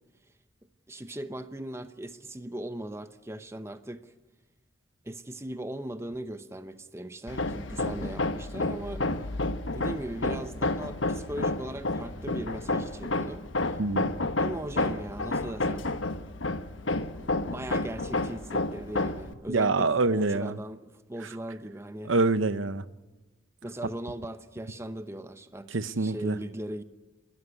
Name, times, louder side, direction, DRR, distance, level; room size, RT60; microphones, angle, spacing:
voice 1, 0.9-4.1 5.0-9.1 9.7-13.8 14.4-15.9 17.2-22.1 23.6-26.8, right 1 dB, 15° right, 0.8 m, -39 dB
Hammer, 7.3-19.3, left 2 dB, 75° left, 1.2 m, -30 dB
voice 2, 13.8-14.1 19.5-20.5 22.1-22.8 25.7-26.4, right 3 dB, 80° right, 0.9 m, -25 dB
29.0 x 13.5 x 9.7 m
head